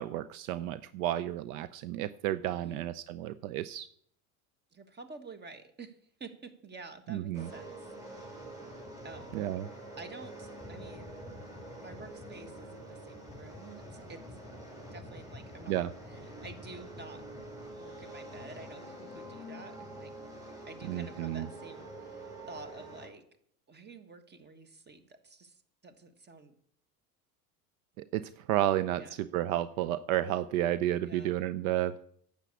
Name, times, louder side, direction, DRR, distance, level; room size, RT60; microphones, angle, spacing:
voice 1, 0.0-3.9 7.1-7.5 9.3-9.7 15.7-15.9 20.9-21.5 28.0-32.0, right 13 dB, 65° right, 15 dB, 0.7 m, -32 dB
voice 2, 2.5-2.8 4.7-8.5 9.0-9.3 10.0-11.1 11.8-14.4 14.9-15.8 16.1-17.2 17.8-20.1 20.7-23.2 23.7-26.5 28.9-29.3 31.0-31.3, right 3 dB, 25° right, 9 dB, 1.6 m, -50 dB
sound 1, 7.3-23.1, right 1 dB, 10° right, 4.6 m, -46 dB
9.9 x 7.3 x 8.3 m, 0.66 s
hypercardioid pair, 90°, 45 cm